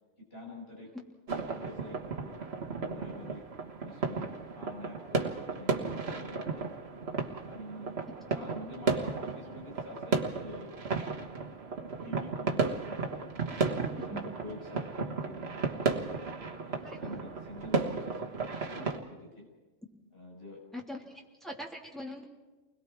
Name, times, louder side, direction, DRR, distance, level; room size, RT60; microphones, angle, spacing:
voice 1, 0.3-0.9 1.4-2.4 2.8-3.4 3.8-6.6 7.4-8.0 8.3-10.8 11.1-11.4 12.0-13.3 13.7-16.0 16.6-18.3 18.7-19.5 20.1-20.6, left 1 dB, 55° left, -2 dB, 6.3 m, -47 dB
sound 1, 1.3-19.0, right 4 dB, 60° right, 1.7 m, -34 dB
voice 2, 16.8-17.1 20.7-22.3, left 1 dB, ahead, -3 dB, 3.0 m, -42 dB
30.0 x 21.0 x 4.7 m, 1.2 s
omnidirectional pair, 1.2 m